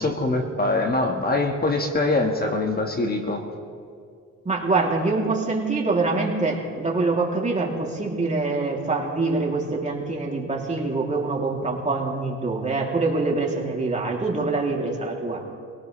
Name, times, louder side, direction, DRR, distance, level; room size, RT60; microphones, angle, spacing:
voice 1, 0.0-3.4, left 2 dB, 30° left, 2 dB, 1.7 m, -23 dB
voice 2, 4.4-15.4, right 3 dB, 25° right, -2 dB, 3.1 m, -25 dB
24.0 x 18.0 x 3.3 m, 2.2 s
cardioid pair, 90°, 30 cm